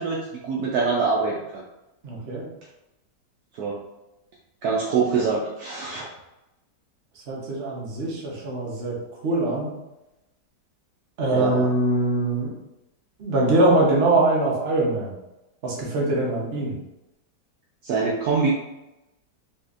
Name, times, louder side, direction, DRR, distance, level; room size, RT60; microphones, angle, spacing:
voice 1, 0.0-1.6 3.6-3.8 4.6-6.1 11.3-11.7 17.8-18.5, right 4 dB, 70° right, -3 dB, 1.0 m, -24 dB
voice 2, 2.0-2.5 7.3-9.7 11.2-12.5 13.2-15.1 15.6-16.7, right 2 dB, 45° right, -3 dB, 1.0 m, -23 dB
4.1 x 2.7 x 2.4 m, 0.94 s
omnidirectional pair, 1.8 m